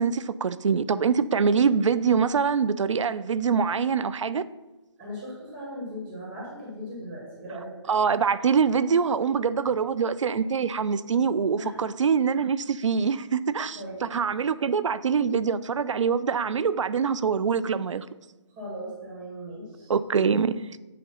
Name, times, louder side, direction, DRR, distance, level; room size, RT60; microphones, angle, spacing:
voice 1, 0.0-4.4 7.9-13.8 14.1-18.1 19.9-20.6, right 6 dB, 80° right, 0.4 m, -24 dB
voice 2, 5.0-7.7 11.6-11.8 13.7-14.1 18.5-19.9, equal, 20° right, 1.8 m, -38 dB
8.4 x 2.8 x 5.5 m
hypercardioid pair, 165°, 16 cm